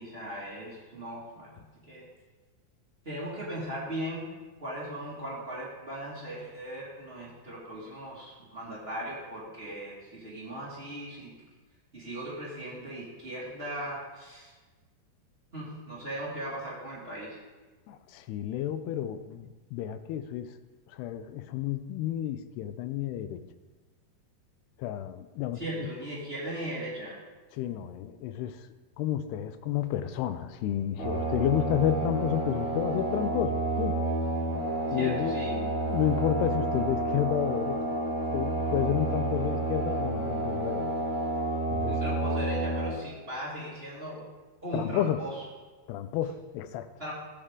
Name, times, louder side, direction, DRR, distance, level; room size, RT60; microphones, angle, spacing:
voice 1, 0.0-2.0 3.0-4.3 4.6-11.3 11.9-14.5 15.5-17.4 25.5-27.2 35.0-35.5 41.8-44.2 44.6-45.4 47.0-47.1, right 1 dB, 20° right, -7 dB, 1.5 m, -38 dB
voice 2, 17.9-20.5 20.9-23.4 24.8-25.9 27.5-28.6 29.0-34.1 34.9-37.8 38.3-40.9 41.7-42.0 44.7-45.2 45.9-46.9, left 11 dB, 90° left, 11 dB, 2.7 m, -31 dB
sound 1, 31.0-42.9, right 2 dB, 35° left, 4.4 m, -30 dB
14.5 x 8.7 x 3.7 m, 1.3 s
omnidirectional pair, 4.6 m